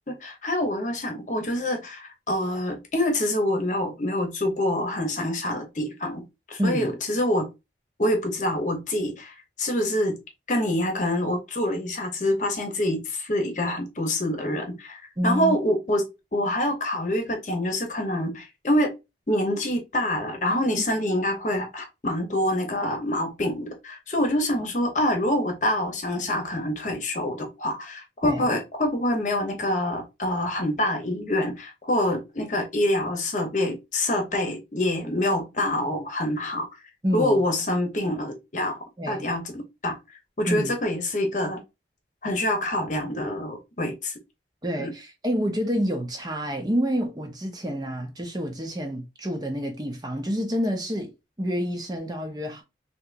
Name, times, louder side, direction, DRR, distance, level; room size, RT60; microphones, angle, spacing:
voice 1, 0.2-7.5 8.0-10.2 10.5-16.0 16.3-18.9 19.3-36.7 37.1-38.8 39.1-40.0 40.4-41.6 42.2-44.1 44.8-44.9, left 1 dB, 45° left, 0.9 m, -26 dB
voice 2, 6.6-7.0 15.2-15.6 28.2-28.5 37.0-37.4 39.0-39.3 40.5-40.7 44.6-51.1 51.4-52.6, equal, 20° right, 0.6 m, -28 dB
3.4 x 2.8 x 2.5 m
head